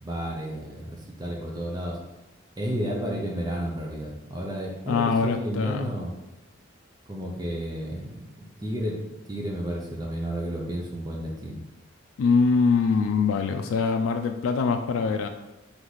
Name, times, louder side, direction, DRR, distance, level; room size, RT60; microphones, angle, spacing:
voice 1, 0.0-2.0 2.6-6.1 7.1-8.2 8.6-11.6, equal, 20° right, -1 dB, 0.5 m, -32 dB
voice 2, 4.9-5.9 12.2-15.3, left 5 dB, 90° left, 5 dB, 0.3 m, -23 dB
3.4 x 3.1 x 4.0 m, 1.0 s
head